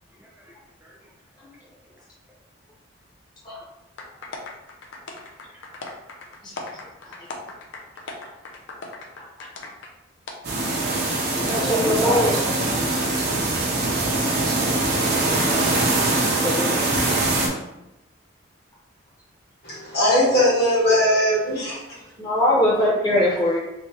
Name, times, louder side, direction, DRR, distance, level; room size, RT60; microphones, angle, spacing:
voice 1, 0.2-0.6 0.8-1.1 1.6-1.8 4.1-4.3 5.4-5.7 6.4-6.6 11.5-13.2 13.7-14.8 16.2-16.8 17.1-17.3 23.1-23.2, equal, 10° right, -4 dB, 0.4 m, -33 dB
sound 1, 4.0-9.9 10.3-10.4, left 3 dB, 75° left, 0.6 m, -38 dB
sound 2, 10.4-17.5, right 2 dB, 55° right, 0.7 m, -22 dB
voice 2, 11.4-12.3 14.4-14.6 22.2-23.6, left 1 dB, 20° left, -6 dB, 1.0 m, -21 dB
voice 3, 19.6-22.0, left 1 dB, 55° left, -6 dB, 1.5 m, -20 dB
3.4 x 3.0 x 2.9 m, 0.91 s
head